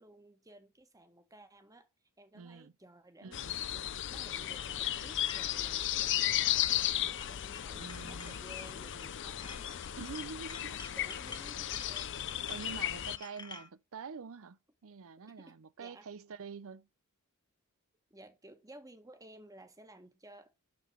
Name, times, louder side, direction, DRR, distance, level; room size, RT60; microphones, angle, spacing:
voice 1, 0.0-1.9 2.2-9.8 10.6-12.3 15.4-16.1 18.1-20.6, right 1 dB, 15° right, 1.6 m, -56 dB
voice 2, 2.3-2.7 3.2-3.6 7.7-8.3 10.0-10.8 11.7-11.9 12.5-16.9, right 5 dB, 65° right, 0.6 m, -46 dB
sound 1, 3.3-13.2, left 12 dB, 55° left, 0.5 m, -35 dB
sound 2, 5.3-5.5 6.4-6.9 7.2-9.1 9.4-13.7, left 4 dB, 20° left, 0.9 m, -50 dB
6.2 x 5.9 x 6.3 m
head